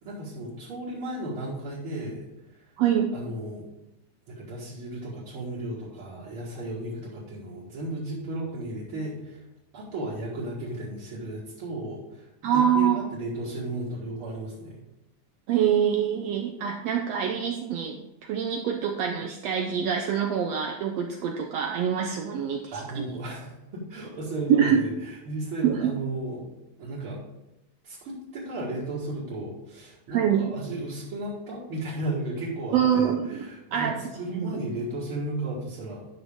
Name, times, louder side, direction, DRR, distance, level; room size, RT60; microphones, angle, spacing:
voice 1, 0.0-2.2 3.1-3.7 4.3-9.4 9.7-14.8 22.7-26.5 26.8-27.2 27.8-36.1, right 1 dB, 45° right, -8 dB, 2.4 m, -34 dB
voice 2, 2.8-3.1 12.4-13.0 15.5-23.0 24.5-24.9 25.6-25.9 30.1-30.5 32.7-34.0 34.3-34.6, right 8 dB, 90° right, 2 dB, 1.4 m, -25 dB
11.0 x 6.0 x 3.6 m, 0.96 s
omnidirectional pair, 3.7 m